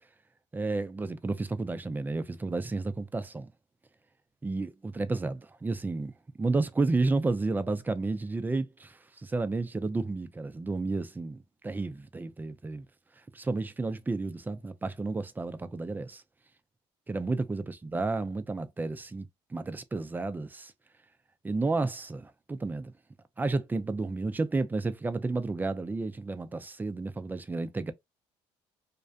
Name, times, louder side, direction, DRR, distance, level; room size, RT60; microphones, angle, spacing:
voice 1, 0.5-3.5 4.4-6.1 6.4-12.9 13.3-16.2 17.1-20.7 21.4-22.9 23.4-27.9, right 3 dB, 15° right, 0.4 m, -31 dB
2.4 x 2.1 x 2.4 m
supercardioid pair, 75°, 12 cm